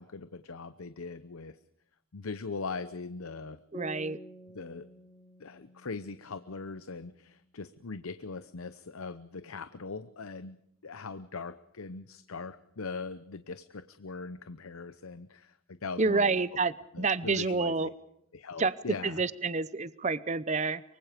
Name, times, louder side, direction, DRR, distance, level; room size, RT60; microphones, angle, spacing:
voice 1, 0.0-1.6 2.1-3.6 4.5-4.9 5.4-16.4 16.9-17.9 18.3-19.2, left 4 dB, 90° left, 0.8 m, -41 dB
sound 1, 3.7-7.2, right 2 dB, 20° left, 3.6 m, -50 dB
voice 2, 3.7-4.2 16.0-17.9 18.6-18.7 19.0-20.8, right 4 dB, 35° right, 0.7 m, -28 dB
24.0 x 24.0 x 5.1 m
head